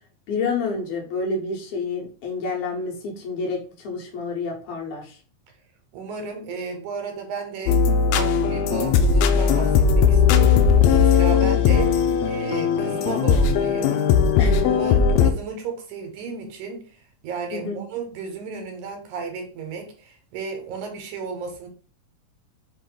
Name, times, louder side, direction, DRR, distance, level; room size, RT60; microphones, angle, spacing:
voice 1, 0.3-5.2 14.4-14.7 17.5-17.8, left 4 dB, 75° left, -1 dB, 2.5 m, -29 dB
voice 2, 5.9-7.8 8.1-10.7 11.0-14.0 14.7-16.8 17.2-21.7, right 5 dB, 75° right, 4 dB, 2.2 m, -33 dB
sound 1, 7.7-15.3, left 6 dB, 90° left, 1.5 m, -18 dB
5.3 x 2.6 x 3.8 m, 0.39 s
omnidirectional pair, 3.6 m